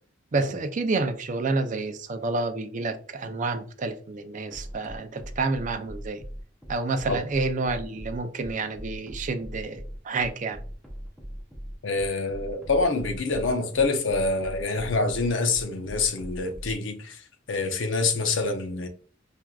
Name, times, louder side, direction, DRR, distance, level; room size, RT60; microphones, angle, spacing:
voice 1, 0.3-6.2 6.7-10.6, right 3 dB, 40° right, 0.4 m, -29 dB
sound 1, 4.5-16.8, equal, ahead, 0.6 m, -39 dB
voice 2, 11.8-17.2 17.5-18.9, left 3 dB, 75° left, 0.6 m, -26 dB
4.5 x 2.5 x 2.3 m
head